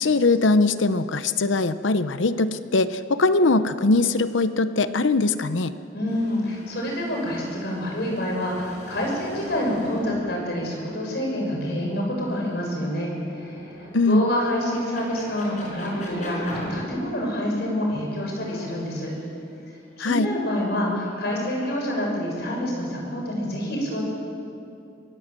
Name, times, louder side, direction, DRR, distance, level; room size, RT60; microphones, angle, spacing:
voice 1, 0.0-5.7 13.9-14.2 20.0-20.3, left 3 dB, 85° left, 12 dB, 0.8 m, -21 dB
voice 2, 5.9-19.1 20.0-24.1, left 1 dB, 60° left, -1 dB, 6.5 m, -27 dB
sound 1, 6.1-17.5 17.9-19.6 20.6-21.8, equal, 40° left, 5.4 m, -41 dB
24.0 x 18.5 x 7.7 m, 2.5 s
head